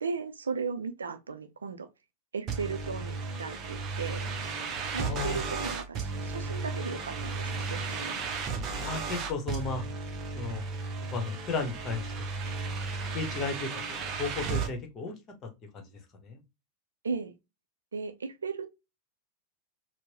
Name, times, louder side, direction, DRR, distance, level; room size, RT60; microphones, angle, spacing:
voice 1, 0.0-1.9 2.3-4.3 4.9-8.2 17.0-17.3 17.9-18.7, right 5 dB, 70° right, 0.5 m, -36 dB
sound 1, 2.5-14.7, right 4 dB, 35° right, 0.7 m, -34 dB
voice 2, 5.0-5.4 7.8-7.9 8.8-9.9 10.3-10.6 11.1-12.1 12.5-12.7 13.1-15.1 15.4-15.9 16.2-16.4, left 4 dB, 30° left, 1.1 m, -34 dB
4.4 x 2.1 x 2.8 m
figure-of-eight pair, 90°, 0 cm